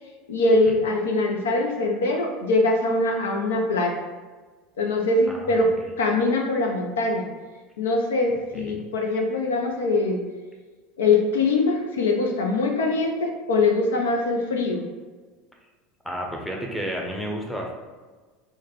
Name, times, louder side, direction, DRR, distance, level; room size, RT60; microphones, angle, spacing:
voice 1, 0.3-4.0 4.8-5.7 6.0-7.3 7.8-10.2 11.0-14.9, left 2 dB, 75° left, 2 dB, 0.4 m, -22 dB
voice 2, 5.3-5.7 8.5-8.8 16.0-17.7, equal, 5° left, 0 dB, 0.7 m, -31 dB
4.7 x 2.1 x 2.8 m, 1.3 s
figure-of-eight pair, 75°, 0 cm